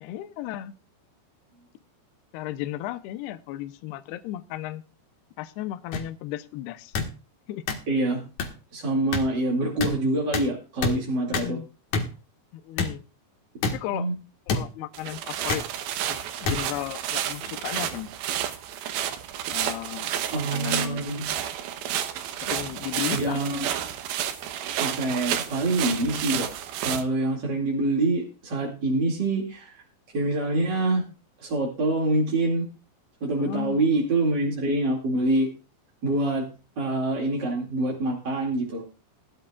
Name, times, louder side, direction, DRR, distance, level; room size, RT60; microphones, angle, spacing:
voice 1, 0.0-0.7 2.3-4.8 5.4-6.9 7.5-7.6 11.3-11.7 12.5-13.0 13.7-14.1 14.5-15.6 16.1-18.1 19.5-21.1 22.4-23.4 33.4-33.8, left 14 dB, 75° left, 10 dB, 2.6 m, -35 dB
sound 1, 5.9-6.0 6.9-7.1 7.7-7.8 8.4-8.5 9.1-9.2 9.8-9.9 10.3-10.5 10.8-10.9 11.3-11.5 11.9-12.1 12.8-12.9 13.6-13.7 14.5-14.6 15.5-15.7 16.4-16.6 17.4-17.6, left 4 dB, 55° left, 2.3 m, -26 dB
voice 2, 7.9-8.2 8.7-11.6 13.9-14.1 20.3-21.2 23.1-23.7 24.8-26.5 26.8-29.7 30.1-31.0 31.4-32.6 33.2-35.5 36.0-36.4 36.8-38.8, right 2 dB, 35° right, -2 dB, 2.1 m, -25 dB
sound 2, 14.9-27.0, right 10 dB, 70° right, 2.5 m, -31 dB
19.5 x 12.0 x 2.4 m, 0.32 s
omnidirectional pair, 5.1 m